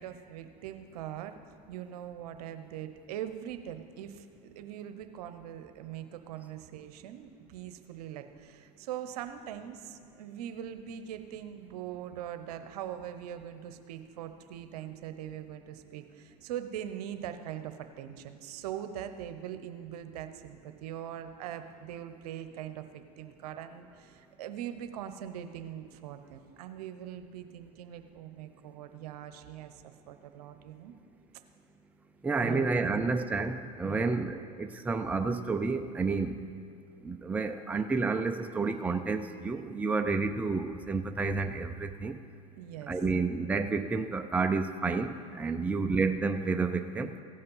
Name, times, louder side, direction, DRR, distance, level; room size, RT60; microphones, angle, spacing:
voice 1, 0.0-1.4 1.7-30.9 32.4-33.1 33.8-34.2 42.6-43.0, right 10 dB, 70° right, 9 dB, 0.9 m, -42 dB
voice 2, 32.2-36.4 37.0-42.2 42.9-47.1, right 4 dB, 5° right, 6 dB, 0.5 m, -30 dB
16.0 x 5.5 x 5.5 m, 2.3 s
hypercardioid pair, 105°, 20 cm